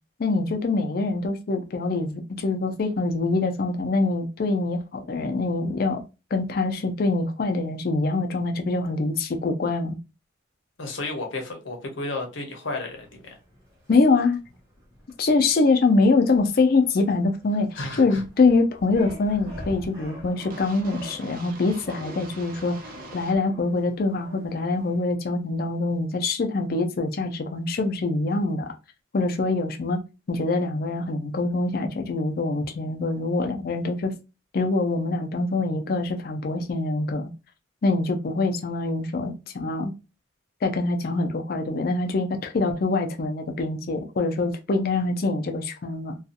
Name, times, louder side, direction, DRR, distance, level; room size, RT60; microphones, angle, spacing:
voice 1, 0.2-6.0 6.3-10.0 13.9-14.4 15.2-17.7 18.0-22.8 23.1-28.7 29.1-30.0 30.3-34.2 34.5-37.3 37.8-39.9 40.6-46.2, left 3 dB, 50° left, 0.4 m, -24 dB
voice 2, 10.8-13.2 17.7-18.2, left 2 dB, 75° left, 0.8 m, -32 dB
sound 1, 12.9-25.1, left 1 dB, 15° right, 1.1 m, -45 dB
sound 2, 20.5-23.4, right 3 dB, 45° right, 0.5 m, -44 dB
2.6 x 2.3 x 2.4 m
head